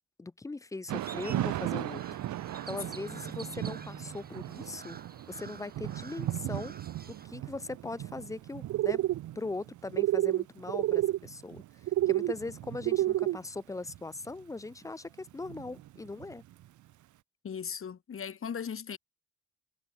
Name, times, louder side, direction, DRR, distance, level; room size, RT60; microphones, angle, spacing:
voice 1, 0.0-2.0 2.7-5.0 5.3-6.7 7.1-9.0 9.4-11.6 12.1-16.4, left 3 dB, 10° left, 0.5 m, -40 dB
Crow, 0.9-7.3, right 4 dB, 30° right, 4.8 m, -48 dB
Thunder / Rain, 0.9-16.9, right 14 dB, 75° right, 1.4 m, -39 dB
sound 1, 8.7-9.2 9.9-10.4 10.7-11.2 11.9-12.3 12.8-13.4, right 14 dB, 60° right, 0.5 m, -27 dB
voice 2, 17.4-19.0, left 7 dB, 45° left, 3.0 m, -37 dB
cardioid pair, 90°, 30 cm